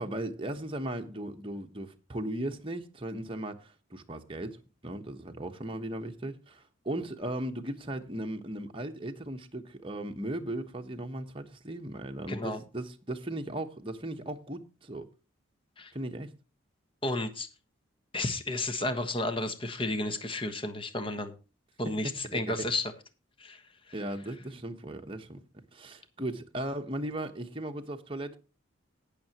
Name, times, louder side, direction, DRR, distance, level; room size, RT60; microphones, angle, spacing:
voice 1, 0.0-15.1 15.9-16.3 21.8-22.7 23.9-25.4 25.7-28.4, right 1 dB, 25° right, 1.1 m, -37 dB
voice 2, 12.3-12.6 15.8-15.9 17.0-17.5 18.1-21.3 21.8-22.9 23.4-23.6, left 2 dB, 25° left, 1.2 m, -32 dB
19.0 x 6.7 x 3.0 m
head